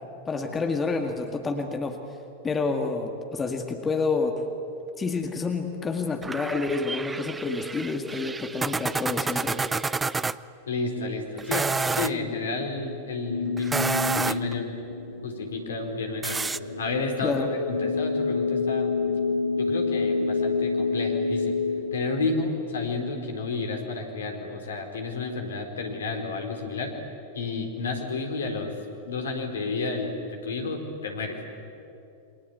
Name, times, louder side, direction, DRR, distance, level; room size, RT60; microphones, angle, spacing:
voice 1, 0.3-2.0 2.4-4.4 5.0-9.6 17.2-17.5, left 4 dB, 15° left, 4 dB, 2.1 m, -28 dB
sound 1, 6.2-10.4 11.4-12.1 13.6-14.5 16.2-16.6, right 4 dB, 10° right, 0.6 m, -29 dB
voice 2, 10.7-14.8 15.2-16.4 16.8-18.9 19.6-21.6 21.9-26.9 27.3-28.7 29.0-31.4, left 3 dB, 65° left, 4 dB, 4.1 m, -31 dB
sound 2, 13.3-23.1, left 4 dB, 85° left, 1.0 m, -28 dB
28.5 x 24.5 x 8.4 m, 2.8 s
figure-of-eight pair, 90°, 0 cm